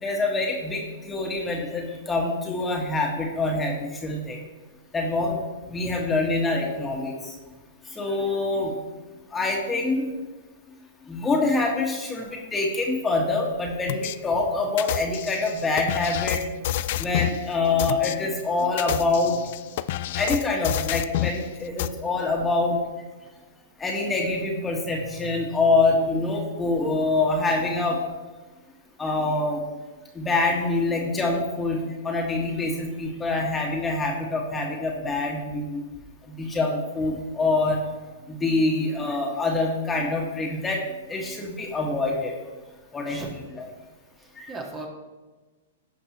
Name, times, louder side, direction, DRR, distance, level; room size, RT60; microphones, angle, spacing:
voice 1, 0.0-4.4 4.9-5.4 5.7-7.1 8.0-8.7 9.3-10.1 11.1-16.4 17.0-19.4 20.2-22.8 23.8-28.0 29.0-29.6 30.2-31.8 32.0-35.8 36.3-37.8 38.3-40.8 41.1-42.3 42.9-43.2 43.6-43.7, left 3 dB, 15° left, -1 dB, 1.9 m, -25 dB
sound 1, 13.9-14.2 14.8-17.4 17.8-18.1 18.7-21.4 21.8-21.9, left 14 dB, 55° left, 0.4 m, -28 dB
voice 2, 43.1-43.5 44.2-44.9, right 2 dB, 20° right, 1 dB, 1.9 m, -38 dB
17.0 x 5.9 x 3.1 m, 1.2 s
hypercardioid pair, 115°, 0 cm